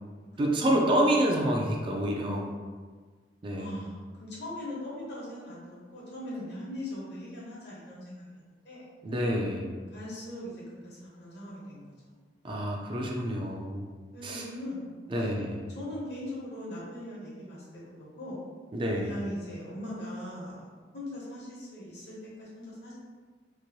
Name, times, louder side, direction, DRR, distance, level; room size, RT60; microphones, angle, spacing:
voice 1, 0.4-2.5 3.4-3.7 9.0-9.7 12.4-13.9 14.2-14.4 15.1-15.6 18.7-19.1, right 1 dB, 30° right, 0 dB, 0.3 m, -28 dB
voice 2, 3.6-8.9 9.9-11.9 12.4-12.6 14.1-14.9 15.2-15.3 15.7-18.4 18.9-22.9, left 1 dB, 70° left, -6 dB, 1.1 m, -40 dB
3.1 x 2.5 x 2.7 m, 1.5 s
head